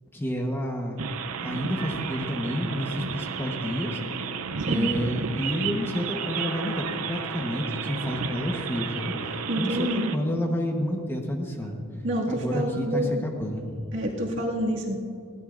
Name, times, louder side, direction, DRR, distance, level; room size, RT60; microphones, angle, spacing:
voice 1, 0.1-1.0 1.4-4.0 4.6-9.1 9.6-11.8 12.3-14.0, equal, 10° left, 1 dB, 1.1 m, -29 dB
sound 1, 1.0-10.2, right 6 dB, 90° right, 0.6 m, -32 dB
voice 2, 9.5-10.1 12.0-13.2 13.9-15.0, equal, 60° right, -2 dB, 2.1 m, -27 dB
20.5 x 16.5 x 2.6 m, 2.4 s
head